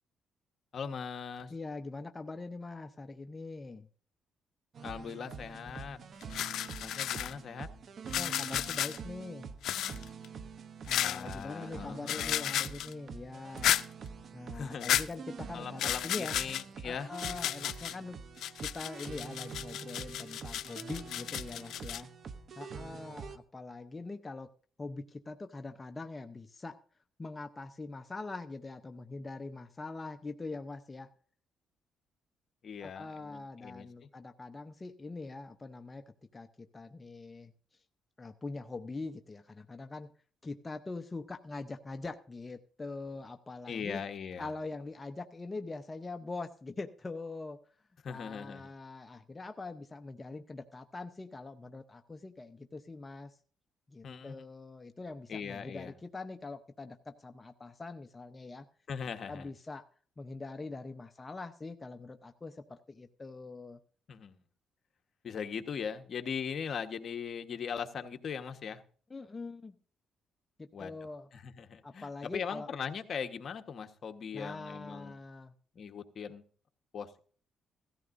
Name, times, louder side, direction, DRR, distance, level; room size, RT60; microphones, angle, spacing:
voice 1, 0.7-1.5 4.8-6.0 6.8-7.7 11.0-12.5 14.5-14.9 15.5-17.1 32.6-33.9 43.7-44.5 48.0-48.7 54.0-54.3 55.3-55.9 58.9-59.5 64.1-64.4 65.2-68.8 70.7-71.0 71.3-75.2 75.7-76.4 76.9-77.2, left 6 dB, 55° left, 7 dB, 1.2 m, -40 dB
voice 2, 1.5-3.9 8.2-9.5 10.8-13.7 14.3-16.6 16.8-18.2 18.6-22.1 22.6-24.5 24.8-26.8 27.2-31.1 32.8-37.5 38.2-40.1 40.4-44.0 44.4-47.6 48.1-53.3 53.9-58.7 59.3-59.8 60.2-63.8 69.1-69.7 70.6-71.3 71.8-72.7 74.3-75.5, left 3 dB, 25° left, 6 dB, 0.8 m, -43 dB
sound 1, 4.7-23.4, right 5 dB, 55° right, 0.8 m, -46 dB
sound 2, 5.7-5.8 6.2-7.3 8.1-9.0 9.6-10.2 10.9-11.3 12.1-12.9 13.6-13.8 14.8-15.0 15.8-16.6 17.1-17.9 18.4-22.0, left 11 dB, 80° left, 0.5 m, -33 dB
16.0 x 14.0 x 2.6 m, 0.43 s
cardioid pair, 90°, 0 cm